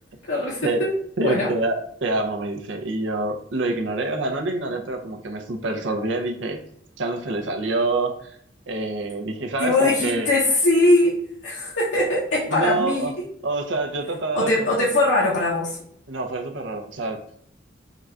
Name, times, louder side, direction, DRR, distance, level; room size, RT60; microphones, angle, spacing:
voice 1, 0.3-0.9 1.2-1.5 9.6-11.2 11.4-13.1 14.3-15.8, left 2 dB, 75° left, -5 dB, 0.8 m, -21 dB
voice 2, 1.2-6.6 7.0-8.4 8.7-10.3 12.5-13.1 13.4-14.8 16.1-17.2, right 2 dB, 80° right, 4 dB, 0.7 m, -26 dB
3.8 x 2.4 x 4.3 m, 0.66 s
head